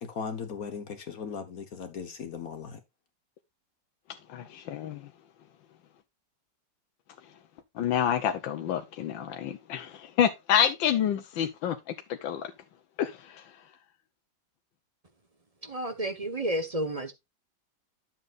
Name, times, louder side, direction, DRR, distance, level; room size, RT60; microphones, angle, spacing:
voice 1, 0.0-2.8, left 6 dB, 55° left, 1.5 m, -38 dB
voice 2, 4.3-5.0 7.8-11.8 12.2-12.4 13.0-13.1, left 9 dB, 85° left, 1.6 m, -27 dB
voice 3, 15.6-17.1, right 1 dB, 30° right, 0.8 m, -31 dB
10.0 x 7.6 x 2.5 m
omnidirectional pair, 2.0 m